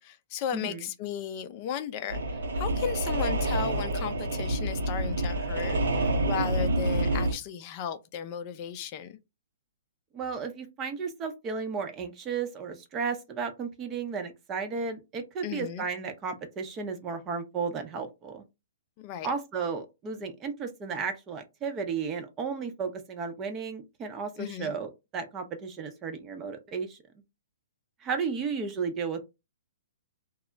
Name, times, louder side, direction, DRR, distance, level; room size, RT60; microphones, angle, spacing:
voice 1, 0.0-9.2 15.4-15.8 19.0-19.3 24.4-24.7, left 9 dB, 35° left, 0.4 m, -35 dB
voice 2, 0.5-0.9 10.1-18.4 19.2-27.0 28.0-29.2, right 5 dB, 25° right, 0.6 m, -34 dB
sound 1, 2.1-7.3, right 1 dB, 80° right, 0.8 m, -28 dB
2.3 x 2.0 x 3.8 m
hypercardioid pair, 140°, 0 cm